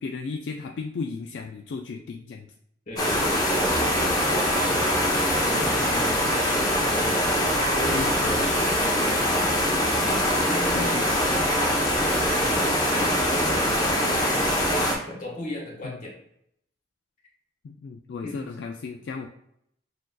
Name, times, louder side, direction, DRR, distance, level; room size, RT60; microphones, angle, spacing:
voice 1, 0.0-2.5 4.7-4.9 7.9-8.4 10.7-11.3 15.8-16.0 17.6-19.3, left 4 dB, 70° left, 2 dB, 0.3 m, -35 dB
voice 2, 2.9-3.4 3.9-9.4 10.0-14.5 15.1-16.1 18.2-18.4, left 1 dB, 45° left, -3 dB, 1.4 m, -37 dB
sound 1, 3.0-14.9, equal, 20° left, 0.8 m, -23 dB
6.2 x 2.6 x 2.3 m, 0.74 s
head